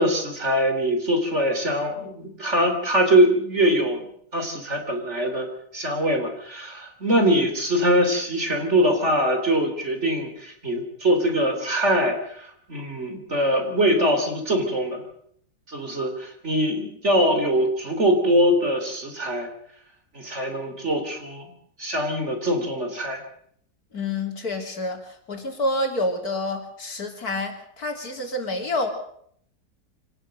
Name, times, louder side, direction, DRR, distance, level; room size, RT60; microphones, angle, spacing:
voice 1, 0.0-4.0 4.3-5.5 5.7-15.0 15.7-19.5 20.1-21.5 21.8-23.2, equal, 40° right, 5 dB, 3.8 m, -23 dB
voice 2, 23.9-28.9, left 1 dB, 55° left, 3 dB, 3.6 m, -28 dB
25.5 x 18.5 x 6.6 m, 0.67 s
omnidirectional pair, 1.9 m